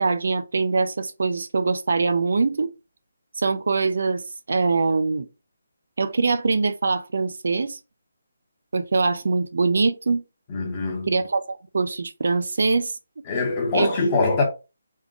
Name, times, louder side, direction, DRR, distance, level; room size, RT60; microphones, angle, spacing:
voice 1, 0.0-2.7 3.4-4.2 4.5-5.3 6.0-7.8 8.7-10.2 11.1-12.9 13.7-14.0, right 4 dB, 50° right, 0.4 m, -23 dB
voice 2, 10.5-11.1 13.3-14.4, left 3 dB, 15° left, 0.7 m, -23 dB
3.6 x 2.4 x 3.6 m
hypercardioid pair, 180°, 0 cm